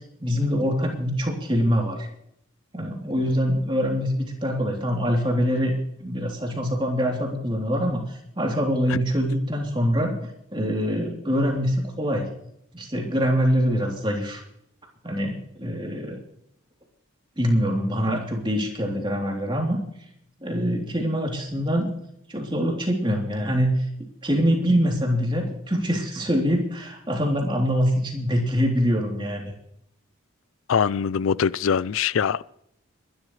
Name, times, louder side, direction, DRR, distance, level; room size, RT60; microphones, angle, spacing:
voice 1, 0.2-2.1 2.7-5.7 6.0-10.2 10.5-12.3 12.7-14.4 15.0-16.2 17.4-19.8 20.4-21.9 22.3-23.8 24.2-29.5, equal, 20° right, 3.2 m, -24 dB
voice 2, 30.7-32.4, left 7 dB, 75° left, 0.4 m, -23 dB
22.0 x 12.5 x 3.2 m
head